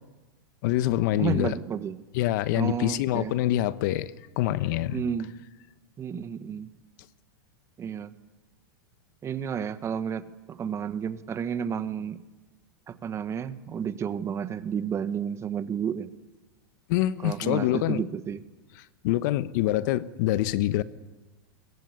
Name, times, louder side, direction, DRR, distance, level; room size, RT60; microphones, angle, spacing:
voice 1, 0.6-1.6 2.1-5.0 16.9-18.0 19.0-20.8, left 15 dB, 55° left, 15 dB, 1.0 m, -25 dB
voice 2, 1.2-2.0 2.5-3.3 4.9-5.4 6.0-6.7 7.8-8.1 9.2-12.2 12.9-16.1 17.2-18.4, right 8 dB, 25° right, 12 dB, 1.3 m, -31 dB
23.0 x 22.5 x 9.6 m, 1.2 s
hypercardioid pair, 120°, 12 cm